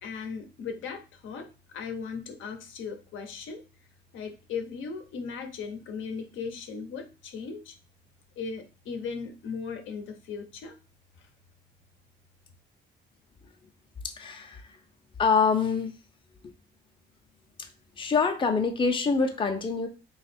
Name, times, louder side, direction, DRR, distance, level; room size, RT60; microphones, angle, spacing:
voice 1, 0.0-3.6 4.1-7.7 8.4-10.7 11.2-11.3, left 5 dB, 80° left, 5 dB, 0.8 m, -37 dB
voice 2, 14.0-14.8 15.2-16.0 16.4-16.5 18.0-19.9, left 5 dB, 25° left, 5 dB, 0.6 m, -25 dB
3.0 x 2.4 x 4.3 m, 0.32 s
cardioid pair, 90°, 20 cm